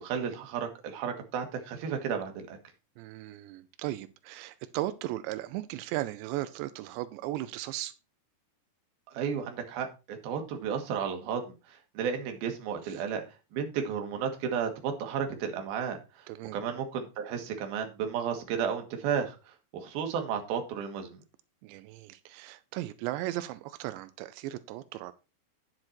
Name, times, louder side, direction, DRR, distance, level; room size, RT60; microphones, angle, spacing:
voice 1, 0.0-2.6 9.1-11.4 11.7-13.2 13.5-16.3 16.5-19.4 19.7-21.2, right 7 dB, 65° right, 3.2 m, -33 dB
voice 2, 3.0-7.9 12.8-13.0 16.3-16.6 21.6-25.1, right 15 dB, 90° right, 2.9 m, -36 dB
9.7 x 7.9 x 4.4 m
omnidirectional pair, 5.0 m